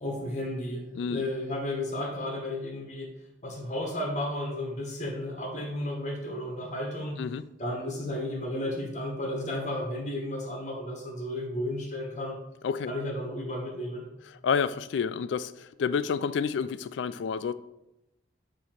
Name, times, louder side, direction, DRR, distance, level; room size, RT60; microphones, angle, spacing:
voice 1, 0.0-0.8 1.1-3.1 3.4-7.2 7.6-12.4 12.9-14.0, left 1 dB, 40° left, 0 dB, 1.2 m, -33 dB
voice 2, 14.2-17.5, left 6 dB, 75° left, 15 dB, 0.3 m, -29 dB
8.1 x 2.9 x 4.4 m, 0.89 s
head